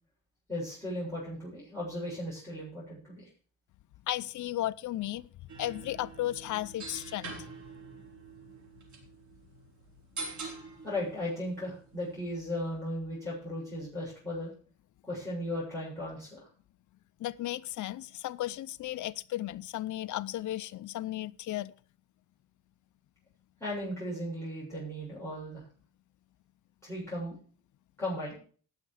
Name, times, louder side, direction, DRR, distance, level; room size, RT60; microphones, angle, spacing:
voice 1, 0.5-3.3 10.8-14.5 15.1-16.5 23.6-25.6 26.8-27.3 28.0-28.4, left 1 dB, 10° left, 7.3 m, -36 dB
voice 2, 4.1-5.3 5.6-7.4 17.2-21.7, left 14 dB, 70° left, 0.6 m, -35 dB
sound 1, 5.5-12.7, right 3 dB, 70° right, 4.9 m, -45 dB
18.5 x 6.6 x 4.9 m
cardioid pair, 130°, 31 cm